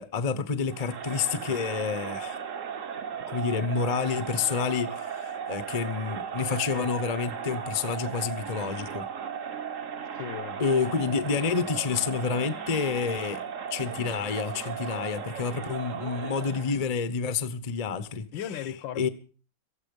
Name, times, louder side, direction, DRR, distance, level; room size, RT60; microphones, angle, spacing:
voice 1, 0.0-2.4 3.3-9.1 10.6-13.4 13.7-18.3 19.0-19.1, left 5 dB, 30° left, 0.7 m, -29 dB
Crowd, 0.7-16.8, right 7 dB, 45° right, 1.3 m, -36 dB
voice 2, 10.1-10.6 18.3-19.1, left 9 dB, 70° left, 1.7 m, -36 dB
18.5 x 14.5 x 5.3 m
omnidirectional pair, 2.2 m